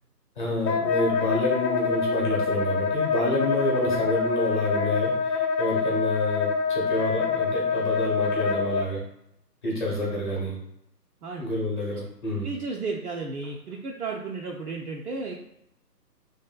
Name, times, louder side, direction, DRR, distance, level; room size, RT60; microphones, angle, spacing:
voice 1, 0.4-9.0 9.6-10.6 11.4-12.5, left 1 dB, 30° left, -3 dB, 0.9 m, -28 dB
Wind instrument woodwind instrument, 0.7-8.9, left 5 dB, 85° left, 0.6 m, -26 dB
voice 2, 12.4-15.4, right 3 dB, 65° right, -1 dB, 0.5 m, -33 dB
3.1 x 2.6 x 2.3 m, 0.79 s
figure-of-eight pair, 140°, 50 cm